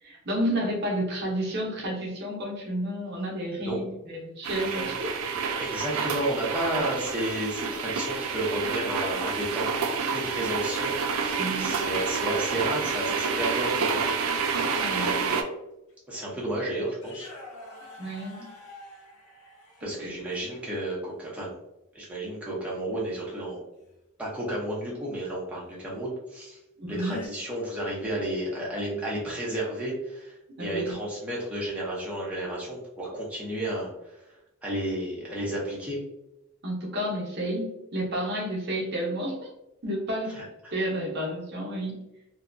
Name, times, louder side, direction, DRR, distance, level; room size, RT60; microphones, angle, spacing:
voice 1, 0.0-5.1 11.4-11.8 14.8-15.3 18.0-18.5 19.8-20.3 26.8-27.2 30.6-30.9 36.6-39.5 39.8-40.3 40.7-42.0, equal, 50° right, -2 dB, 0.7 m, -31 dB
sound 1, 4.4-15.4, right 5 dB, 80° right, 0.4 m, -29 dB
voice 2, 5.6-9.7 10.0-14.1 15.0-15.4 16.1-17.3 19.8-21.5 21.9-23.6 24.2-26.6 26.9-34.2 34.6-36.0 40.3-40.4, right 1 dB, 5° right, -6 dB, 0.7 m, -32 dB
sound 2, 12.0-14.3 14.9-15.0 15.9-16.0 16.3-16.6 16.9-20.6 23.8-24.0 25.7-25.8 26.8-27.3, left 2 dB, 90° left, 0.6 m, -47 dB
2.7 x 2.2 x 2.5 m, 0.90 s
head